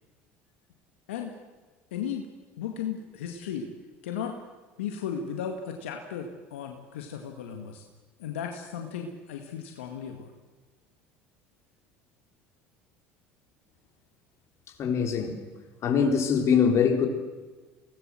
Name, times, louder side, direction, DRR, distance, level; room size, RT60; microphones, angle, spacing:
voice 1, 1.9-2.3 2.6-3.7 4.0-4.4 4.8-7.8 8.2-10.3, left 8 dB, 80° left, 3 dB, 2.1 m, -35 dB
voice 2, 14.8-15.4 15.8-17.1, left 6 dB, 50° left, 4 dB, 4.0 m, -23 dB
23.5 x 19.0 x 7.7 m, 1.3 s
hypercardioid pair, 75°, 6 cm